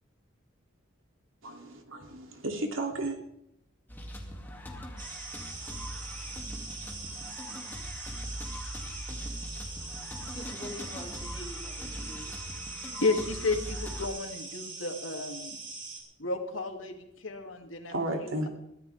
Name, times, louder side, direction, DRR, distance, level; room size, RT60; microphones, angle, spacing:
voice 1, 1.4-3.2 7.5-7.6 17.9-18.5, right 1 dB, 80° right, 3.0 m, -33 dB
sound 1, 3.9-14.1, equal, 10° left, 2.5 m, -41 dB
sound 2, 5.0-16.0, right 3 dB, 40° right, 5.0 m, -42 dB
voice 2, 10.3-12.4, left 1 dB, 25° left, 2.5 m, -44 dB
voice 3, 12.8-15.6 16.2-17.9 18.2-18.5, left 3 dB, 80° left, 2.7 m, -32 dB
22.5 x 15.0 x 3.5 m
head